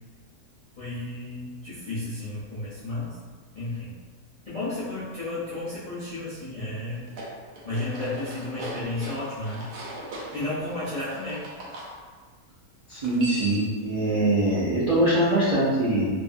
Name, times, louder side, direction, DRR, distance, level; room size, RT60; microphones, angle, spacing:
voice 1, 0.8-3.2 3.5-3.9 4.5-7.1 7.6-9.7 10.3-11.4, left 2 dB, 55° left, -12 dB, 0.4 m, -32 dB
sound 1, 6.9-11.9 12.9-13.8, right 1 dB, 90° right, 1.2 m, -39 dB
voice 2, 12.9-16.1, right 1 dB, 70° right, -9 dB, 0.3 m, -23 dB
2.6 x 2.4 x 2.4 m, 1.5 s
omnidirectional pair, 1.6 m